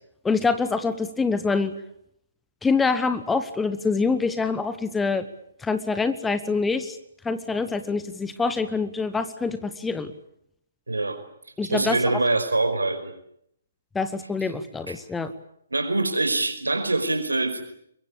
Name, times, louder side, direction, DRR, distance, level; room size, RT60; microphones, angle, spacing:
voice 1, 0.2-1.7 2.6-5.3 5.6-7.0 7.2-10.1 11.6-12.0 13.9-15.3, left 4 dB, 5° left, 11 dB, 1.1 m, -25 dB
voice 2, 10.9-11.2 11.6-13.1 14.9-15.0 15.7-17.6, right 2 dB, 75° right, 9 dB, 5.0 m, -24 dB
23.5 x 22.5 x 8.7 m, 0.74 s
figure-of-eight pair, 130°, 0 cm